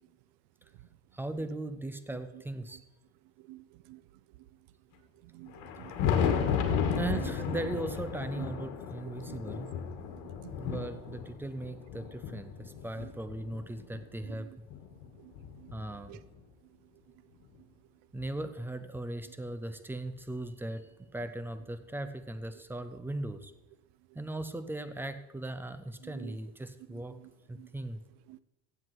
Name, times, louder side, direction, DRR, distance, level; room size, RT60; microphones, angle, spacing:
voice 1, 1.1-2.8 7.0-9.7 10.5-14.5 15.7-16.2 18.1-23.5 24.1-27.2 27.5-28.0, right 2 dB, 5° right, 11 dB, 0.5 m, -38 dB
voice 2, 3.5-4.0 5.3-6.6 9.3-9.4 10.4-10.5 16.1-16.2 26.1-26.4 27.6-27.7 28.3-28.4, right 18 dB, 80° right, 18 dB, 0.7 m, -49 dB
Thunder, 5.5-14.0 14.7-16.4 17.5-17.6 18.2-18.3 20.2-20.3 21.6-21.7 23.3-23.4, left 7 dB, 80° left, 2.2 m, -34 dB
15.5 x 7.9 x 4.6 m, 0.99 s
cardioid pair, 150°, 38 cm